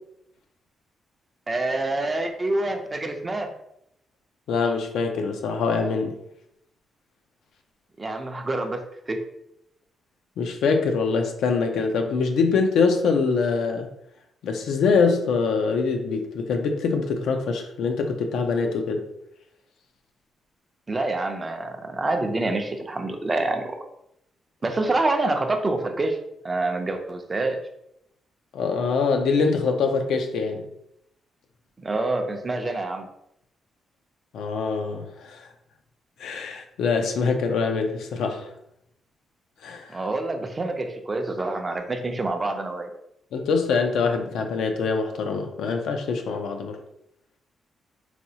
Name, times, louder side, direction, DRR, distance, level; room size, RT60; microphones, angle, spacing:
voice 1, 1.5-3.5 8.0-9.2 20.9-23.8 24.6-26.2 26.4-27.6 31.8-33.1 39.9-42.9, right 2 dB, 25° right, 5 dB, 0.5 m, -27 dB
voice 2, 4.5-6.2 10.4-13.9 14.4-19.1 28.5-30.7 34.3-35.5 36.2-38.5 39.6-40.0 43.3-46.8, left 4 dB, 85° left, 5 dB, 0.5 m, -24 dB
4.1 x 2.3 x 2.8 m, 0.78 s
cardioid pair, 110°, 0 cm